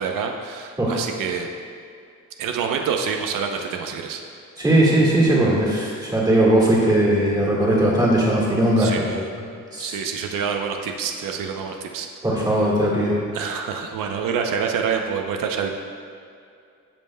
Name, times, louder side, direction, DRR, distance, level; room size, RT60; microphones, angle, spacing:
voice 1, 0.0-1.5 2.4-4.2 8.8-9.3 9.8-12.1 13.3-15.7, right 6 dB, 90° right, 3 dB, 0.7 m, -27 dB
voice 2, 4.6-9.2 9.7-10.0 12.2-13.2, right 1 dB, 10° right, -5 dB, 1.7 m, -19 dB
15.5 x 5.5 x 2.2 m, 2.4 s
cardioid pair, 160°, 32 cm